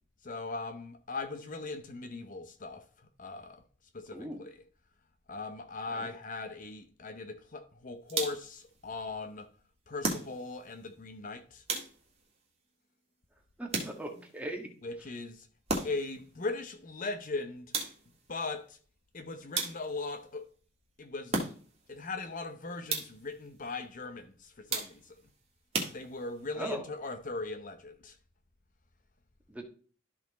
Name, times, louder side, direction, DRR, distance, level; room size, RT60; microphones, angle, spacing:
voice 1, 0.2-2.8 3.2-3.6 3.9-4.5 5.3-9.5 9.9-11.6 14.8-15.5 15.8-17.7 18.3-18.8 19.1-20.4 21.0-21.4 21.9-25.2 25.9-28.2, left 3 dB, 40° left, 0.8 m, -39 dB
sound 1, 8.1-8.6 10.0-10.7 11.7-12.3 13.7-14.3 15.7-16.2 17.7-18.2 19.5-20.1 21.3-21.9 22.9-23.3 24.7-25.2 25.7-26.5, right 3 dB, 30° right, 1.8 m, -35 dB
voice 2, 13.6-14.7 26.6-26.8 29.5-29.6, right 1 dB, 5° right, 1.4 m, -39 dB
12.5 x 4.3 x 4.1 m
head